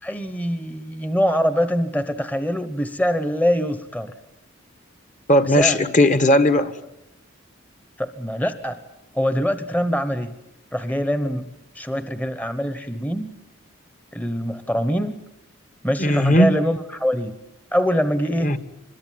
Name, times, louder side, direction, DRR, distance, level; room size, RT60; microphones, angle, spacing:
voice 1, 0.0-4.1 5.6-5.8 8.0-8.8 9.1-10.3 10.7-11.5 11.7-13.3 14.1-15.1 15.8-17.3 17.7-18.5, equal, 10° left, 10 dB, 1.0 m, -23 dB
voice 2, 5.3-6.7 16.0-16.5 18.4-18.6, left 1 dB, 35° left, 11 dB, 1.4 m, -17 dB
26.0 x 22.5 x 9.2 m, 0.84 s
head